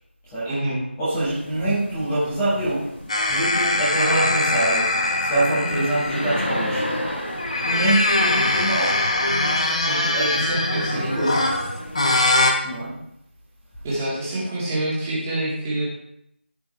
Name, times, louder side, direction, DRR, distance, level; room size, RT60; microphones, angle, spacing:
voice 1, 0.4-0.8 8.4-8.5 10.3-11.2 13.8-15.9, right 1 dB, 10° right, -9 dB, 1.9 m, -26 dB
voice 2, 1.0-6.9 7.6-8.9 9.8-10.5 10.8-11.5 12.6-12.9, right 1 dB, 5° left, -13 dB, 1.4 m, -25 dB
sound 1, 1.1-12.2, equal, 60° left, 3.9 m, -33 dB
sound 2, 3.1-6.6 7.3-12.5, left 2 dB, 30° left, 1.0 m, -22 dB
15.0 x 5.5 x 3.3 m, 0.78 s
figure-of-eight pair, 170°, 7 cm